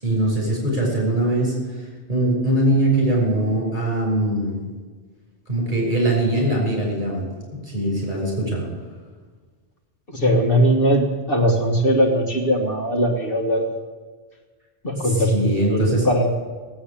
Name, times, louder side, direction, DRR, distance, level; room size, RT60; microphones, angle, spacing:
voice 1, 0.0-4.6 5.5-8.7 15.0-16.1, right 1 dB, 45° right, -2 dB, 6.6 m, -22 dB
voice 2, 10.1-13.6 14.8-16.3, equal, 55° left, 2 dB, 1.8 m, -20 dB
17.5 x 8.4 x 8.7 m, 1.4 s
omnidirectional pair, 1.2 m